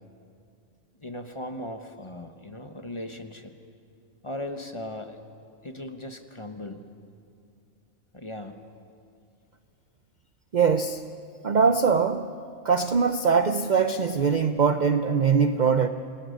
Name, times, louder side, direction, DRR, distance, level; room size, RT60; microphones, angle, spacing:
voice 1, 1.0-3.5 4.2-5.2 5.6-6.8 8.1-8.6, left 1 dB, 25° left, 6 dB, 1.1 m, -38 dB
voice 2, 10.5-11.1 11.4-12.3 12.6-15.9, right 5 dB, 45° right, 9 dB, 0.6 m, -22 dB
29.0 x 19.0 x 6.5 m, 2.5 s
omnidirectional pair, 1.4 m